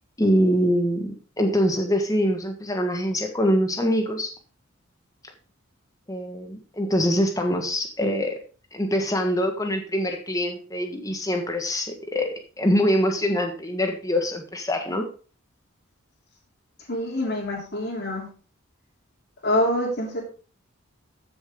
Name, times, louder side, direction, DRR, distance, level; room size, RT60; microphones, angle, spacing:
voice 1, 0.2-4.3 6.1-8.4 8.7-15.1, equal, 15° left, 4 dB, 1.6 m, -24 dB
voice 2, 16.9-18.3 19.4-20.2, left 1 dB, 55° left, -2 dB, 3.3 m, -25 dB
14.0 x 7.1 x 3.8 m, 0.38 s
head